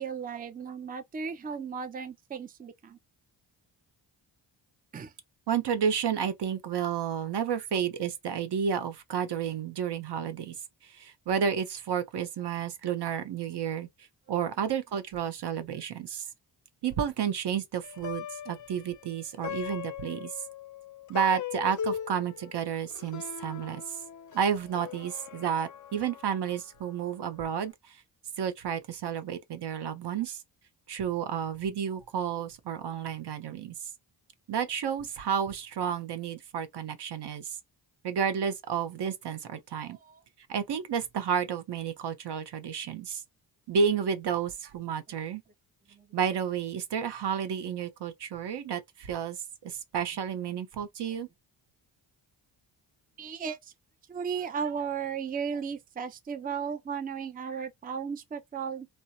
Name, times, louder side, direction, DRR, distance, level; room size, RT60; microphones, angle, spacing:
voice 1, 0.0-3.0 4.9-5.1 39.8-40.2 45.9-46.1 53.2-53.7 54.1-58.9, right 6 dB, 20° right, 0.5 m, -35 dB
voice 2, 5.5-10.6 10.8-13.9 14.3-16.3 16.8-20.3 21.1-24.0 24.3-28.0 28.4-30.4 30.9-33.7 34.5-37.6 38.0-40.0 40.5-43.2 43.7-45.4 46.1-49.4 49.6-51.3, right 7 dB, 60° right, 0.7 m, -31 dB
Plucked string instrument, 17.8-27.3, left 9 dB, 40° left, 0.5 m, -40 dB
2.7 x 2.1 x 2.2 m
cardioid pair, 60°, 46 cm